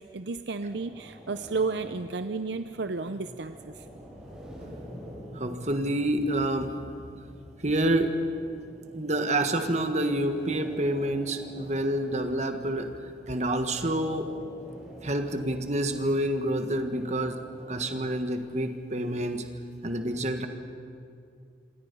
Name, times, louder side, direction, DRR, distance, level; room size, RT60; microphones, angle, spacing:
voice 1, 0.0-3.9, right 4 dB, 65° right, 10 dB, 0.6 m, -32 dB
sound 1, 0.6-18.2, equal, 5° right, 6.5 m, -48 dB
voice 2, 5.3-6.8 7.6-8.1 8.9-12.9 13.3-14.3 15.0-17.4 17.7-19.5 19.8-20.5, right 1 dB, 35° right, 6 dB, 1.6 m, -28 dB
27.0 x 26.5 x 5.5 m, 2.4 s
head